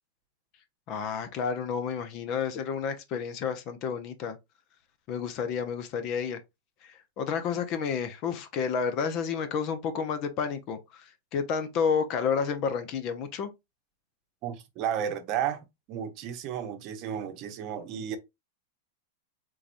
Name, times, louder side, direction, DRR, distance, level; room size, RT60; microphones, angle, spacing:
voice 1, 0.9-4.4 5.1-6.4 6.8-13.5, left 6 dB, 45° left, 0.7 m, -30 dB
voice 2, 14.4-18.2, right 9 dB, 45° right, 0.8 m, -33 dB
3.8 x 3.0 x 2.6 m
hypercardioid pair, 125°, 0 cm